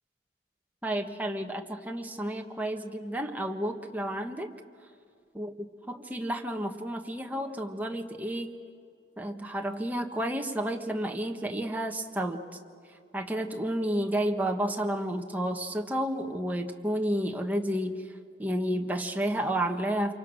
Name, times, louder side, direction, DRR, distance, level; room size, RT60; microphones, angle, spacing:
voice 1, 0.8-4.5 5.3-5.5 5.9-8.5 9.2-12.4 13.1-18.0 18.4-20.1, right 1 dB, 10° right, 3 dB, 1.4 m, -31 dB
27.5 x 24.0 x 6.3 m, 2.4 s
head